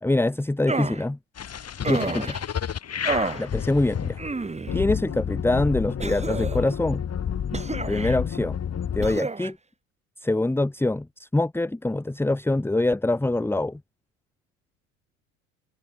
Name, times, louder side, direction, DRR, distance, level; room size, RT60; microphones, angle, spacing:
voice 1, 0.0-1.2 1.9-2.4 3.4-4.2 4.7-7.0 7.9-8.6 8.9-9.6 10.2-13.8, left 2 dB, 5° left, 1.3 m, -24 dB
sound 1, 0.7-1.0 1.8-2.4 3.1-3.5 4.2-4.8 6.0-6.7 7.5-8.2 9.0-9.5, right 3 dB, 15° right, 3.4 m, -30 dB
sound 2, 1.4-9.2, left 8 dB, 35° left, 3.6 m, -30 dB
hypercardioid pair, 65°, 40 cm